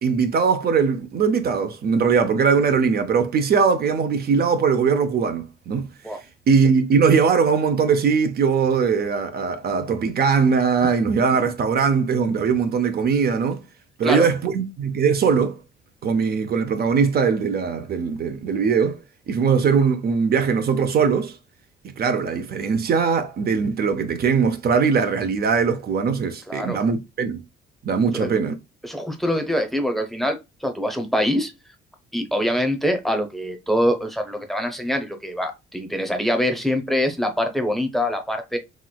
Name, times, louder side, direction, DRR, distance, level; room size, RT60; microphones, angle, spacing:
voice 1, 0.0-5.9 6.5-13.6 14.0-15.6 16.0-19.0 19.3-21.4 21.8-27.4 27.8-28.6, right 5 dB, 50° right, 0.5 m, -20 dB
voice 2, 26.5-26.8 28.1-28.3 28.8-31.5 32.1-38.6, equal, ahead, 0.7 m, -24 dB
3.1 x 2.9 x 2.2 m
cardioid pair, 90°, 20 cm